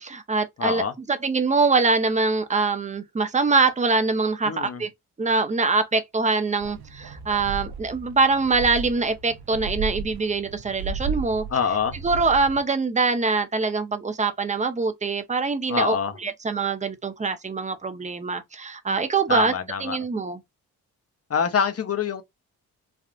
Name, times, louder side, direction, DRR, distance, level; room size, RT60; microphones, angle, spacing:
voice 1, 0.0-0.8 1.1-4.9 5.2-11.4 12.0-19.5 19.8-20.4, right 4 dB, 15° right, 0.7 m, -23 dB
voice 2, 0.6-0.9 4.4-4.8 11.5-11.9 15.7-16.1 19.3-20.0 21.3-22.2, left 7 dB, 35° left, 0.8 m, -25 dB
sound 1, 6.6-12.6, right 5 dB, 65° right, 0.8 m, -34 dB
3.5 x 2.4 x 2.4 m
supercardioid pair, 45°, 41 cm